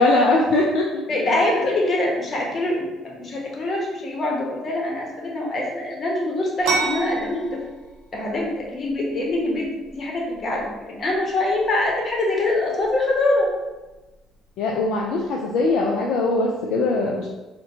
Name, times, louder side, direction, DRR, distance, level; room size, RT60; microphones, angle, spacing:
voice 1, 0.0-1.4 14.6-17.3, left 2 dB, 65° left, -1 dB, 0.3 m, -21 dB
voice 2, 1.1-7.6 8.1-13.5, left 2 dB, 45° left, -1 dB, 0.9 m, -24 dB
sound 1, 6.6-16.0, right 3 dB, 75° right, 0.6 m, -34 dB
3.7 x 2.1 x 2.7 m, 1.1 s
hypercardioid pair, 55°, 0 cm